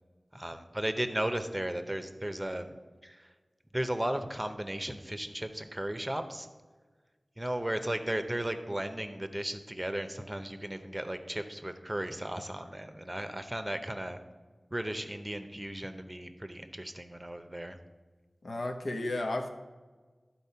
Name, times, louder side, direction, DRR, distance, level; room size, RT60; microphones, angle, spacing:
voice 1, 0.3-3.3 3.7-6.5 7.4-14.2 14.7-17.8, right 1 dB, 20° right, 8 dB, 0.7 m, -35 dB
voice 2, 18.4-19.5, left 2 dB, 80° left, 4 dB, 0.9 m, -33 dB
11.0 x 4.4 x 5.6 m, 1.4 s
wide cardioid pair, 50°, 0 cm